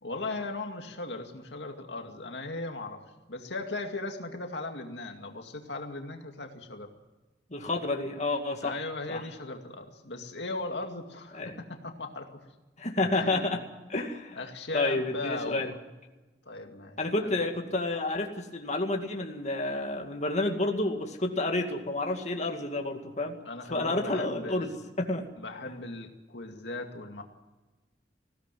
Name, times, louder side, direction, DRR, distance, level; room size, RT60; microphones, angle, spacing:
voice 1, 0.0-6.9 8.6-12.4 13.1-13.6 14.4-15.7 16.4-17.5 23.5-24.8 25.4-27.2, left 2 dB, 75° left, 4 dB, 2.3 m, -38 dB
voice 2, 7.5-8.8 9.1-9.2 11.3-11.6 12.8-13.6 13.9-14.4 14.7-15.7 17.0-23.3 23.7-24.7 25.0-25.2, left 2 dB, 40° left, 3 dB, 2.3 m, -30 dB
20.5 x 16.5 x 9.2 m, 1.2 s
head